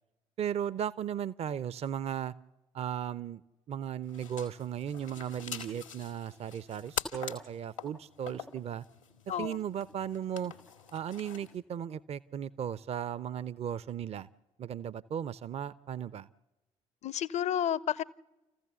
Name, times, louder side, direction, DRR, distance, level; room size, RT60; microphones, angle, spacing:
voice 1, 0.4-2.3 2.7-3.4 3.7-8.8 9.4-10.5 10.9-14.3 14.6-16.3, right 9 dB, 40° right, 0.6 m, -36 dB
sound 1, 4.0-11.6, left 7 dB, 85° left, 1.8 m, -44 dB
voice 2, 17.0-18.0, left 10 dB, 45° left, 0.7 m, -31 dB
28.5 x 15.0 x 7.0 m
figure-of-eight pair, 45°, 16 cm